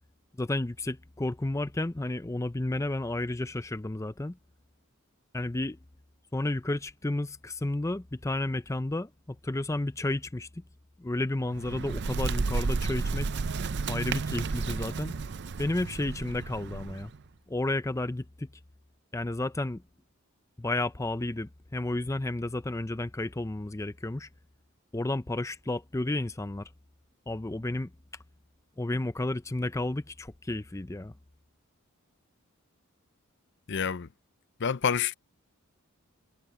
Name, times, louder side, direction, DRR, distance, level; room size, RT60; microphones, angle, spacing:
voice 1, 0.4-4.4 5.3-5.8 6.3-10.6 11.0-13.3 13.9-15.1 15.6-17.1 17.5-18.5 19.1-19.8 20.6-24.3 24.9-26.7 27.3-27.9 28.8-31.1, left 2 dB, 15° left, 0.5 m, -32 dB
Bird, 11.4-17.2, right 4 dB, 55° right, 0.5 m, -32 dB
voice 2, 33.7-34.1 34.6-35.1, left 7 dB, 55° left, 0.6 m, -28 dB
head